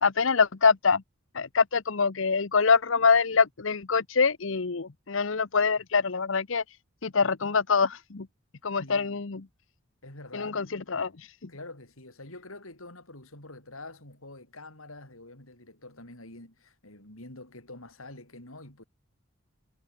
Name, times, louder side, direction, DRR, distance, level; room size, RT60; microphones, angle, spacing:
voice 1, 0.0-1.0 1.3-6.8 7.0-8.3 8.6-9.4 10.3-11.3, left 5 dB, 70° left, 0.9 m, -25 dB
voice 2, 8.8-9.2 10.0-10.6 11.5-18.8, left 2 dB, 85° left, 7.8 m, -46 dB
head